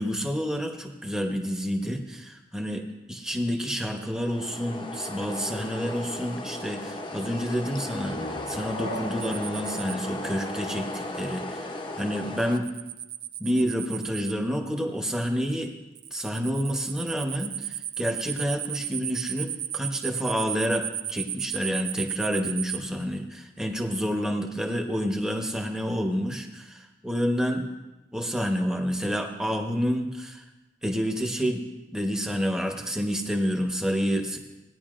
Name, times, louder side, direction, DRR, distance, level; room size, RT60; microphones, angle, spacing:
voice 1, 0.0-12.7 13.4-15.7 16.1-27.7 28.1-30.4 30.8-31.6 31.9-34.4, equal, 5° right, 3 dB, 0.9 m, -29 dB
sound 1, 4.0-12.6, left 2 dB, 30° left, 0.7 m, -36 dB
sound 2, 7.8-11.3, equal, 80° left, 1.0 m, -40 dB
sound 3, 9.2-9.9 12.4-14.3 15.9-22.8, right 11 dB, 75° right, 0.5 m, -34 dB
18.0 x 9.9 x 2.5 m, 1.1 s
head